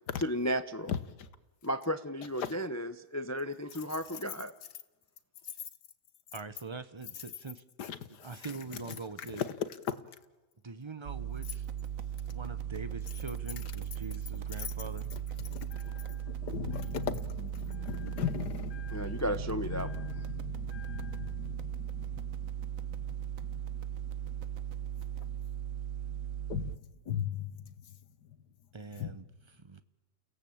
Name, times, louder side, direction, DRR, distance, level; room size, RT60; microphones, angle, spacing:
voice 1, 0.2-0.9 1.6-4.5 18.9-20.0, equal, 25° left, 0.3 m, -34 dB
voice 2, 6.3-7.6 8.2-9.4 10.6-11.7 12.3-15.1 28.7-29.8, right 3 dB, 30° right, 0.6 m, -43 dB
voice 3, 7.8-8.5 9.4-10.0 14.6-14.7 15.5-19.2 19.5-22.7 23.4-23.6 25.3-25.4 26.5-26.7 27.1-27.6 29.0-29.1, left 8 dB, 70° left, 1.7 m, -38 dB
sound 1, 11.1-26.8, right 10 dB, 75° right, 1.7 m, -38 dB
sound 2, 11.7-25.3, right 7 dB, 55° right, 1.4 m, -53 dB
29.5 x 17.0 x 8.7 m
omnidirectional pair, 1.9 m